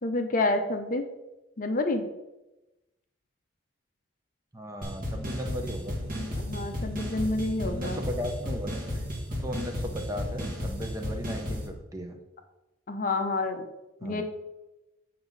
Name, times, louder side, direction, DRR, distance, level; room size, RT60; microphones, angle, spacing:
voice 1, 0.0-1.0 1.6-2.0 6.1-8.0 12.9-13.7 14.0-14.2, left 2 dB, 40° left, 6 dB, 0.7 m, -29 dB
voice 2, 4.5-5.9 7.6-12.2 14.0-14.2, equal, 15° right, 4 dB, 0.7 m, -36 dB
sound 1, 4.8-11.7, equal, 45° right, 1.9 m, -33 dB
7.5 x 5.9 x 4.0 m, 1.0 s
head